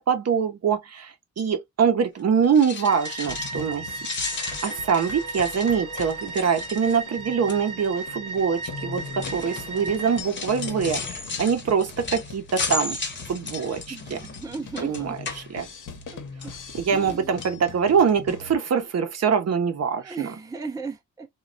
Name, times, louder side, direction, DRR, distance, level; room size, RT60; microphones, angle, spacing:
voice 1, 0.0-3.9 4.3-13.0 13.3-14.2 14.8-15.7 16.7-20.3, right 6 dB, 55° right, 0.7 m, -24 dB
sound 1, 2.4-3.7 4.0-7.1 7.5-7.8 8.6-16.1 16.4-17.1 17.4-17.6 18.1-18.2 18.4-18.5, left 4 dB, 35° left, 0.9 m, -35 dB
sound 2, 2.8-10.2, right 3 dB, 85° right, 0.8 m, -36 dB
sound 3, 3.2-18.6, left 4 dB, 85° left, 0.9 m, -41 dB
voice 2, 13.9-15.2 16.1-16.2 16.9-17.3 20.0-21.3, right 4 dB, 10° right, 0.5 m, -36 dB
3.1 x 2.3 x 2.5 m
wide cardioid pair, 115°, 31 cm